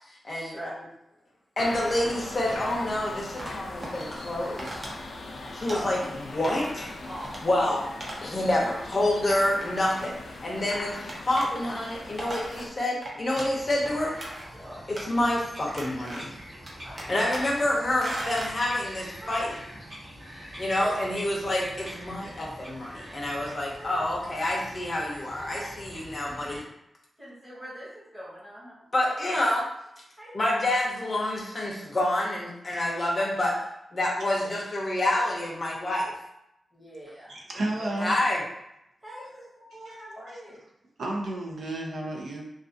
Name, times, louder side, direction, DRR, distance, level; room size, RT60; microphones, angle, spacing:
voice 1, 0.1-0.6 1.6-4.8 5.5-6.0 6.3-6.9 7.4-7.9 8.2-14.1 14.9-16.3 17.1-19.6 20.6-26.6 28.9-29.6 30.3-33.6 33.9-36.1 38.0-38.4, left 1 dB, 30° left, -3 dB, 0.6 m, -28 dB
sound 1, 1.6-12.7, left 2 dB, 85° left, 0.3 m, -40 dB
sound 2, 2.0-2.8 3.4-4.0 4.6-5.0 5.3-6.1 6.4-6.8 7.1-7.4 8.0-8.2 8.5-8.6 9.3-10.4 11.1-11.5 11.9-13.5 13.8-14.5 15.0-15.4 15.7-16.4 16.7-17.6 18.0-18.5, right 1 dB, 30° right, 0.5 m, -39 dB
voice 2, 5.7-6.0 7.0-7.7 14.5-14.9 16.8-17.1 19.2-19.5 20.8-20.9 23.7-24.2 25.4-25.6 27.2-29.5 30.2-30.6 34.4-34.5 36.7-38.4 39.0-40.6, equal, 10° right, -8 dB, 1.0 m, -43 dB
Bird vocalization bird call bird song, 13.3-26.6, equal, 50° right, 0.9 m, -44 dB
voice 3, 37.3-38.1 39.9-40.0 41.0-42.4, right 1 dB, 80° right, -1 dB, 0.5 m, -32 dB
2.4 x 2.3 x 2.6 m, 0.81 s
wide cardioid pair, 175°, 0 cm